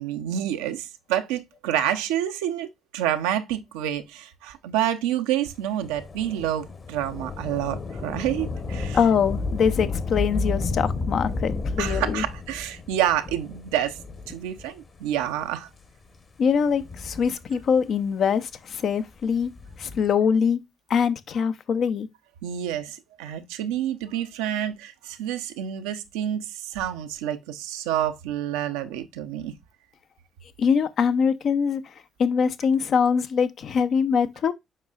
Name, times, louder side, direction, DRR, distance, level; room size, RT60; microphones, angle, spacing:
voice 1, 0.0-9.0 11.8-14.0 14.3-15.7 22.4-29.5, right 11 dB, 75° right, 0.6 m, -28 dB
Thunder / Rain, 5.8-14.8 15.5-15.6 16.6-17.9 19.4-20.1, left 3 dB, 40° left, 1.2 m, -32 dB
voice 2, 8.9-12.2 16.4-19.5 19.8-20.6 20.9-22.1 30.6-31.9 32.2-34.5, left 6 dB, 55° left, 0.7 m, -23 dB
7.5 x 5.4 x 2.4 m
figure-of-eight pair, 40°, 0 cm